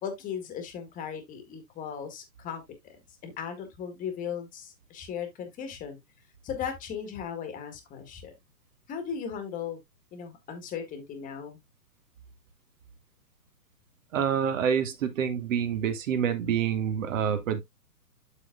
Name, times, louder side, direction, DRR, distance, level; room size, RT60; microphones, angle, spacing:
voice 1, 0.0-3.0 3.2-6.0 6.4-8.3 8.9-9.8 10.1-11.6, left 7 dB, 15° left, 1.8 m, -37 dB
voice 2, 14.1-17.6, right 8 dB, 50° right, 1.9 m, -27 dB
12.5 x 4.2 x 2.3 m
hypercardioid pair, 140°, 49 cm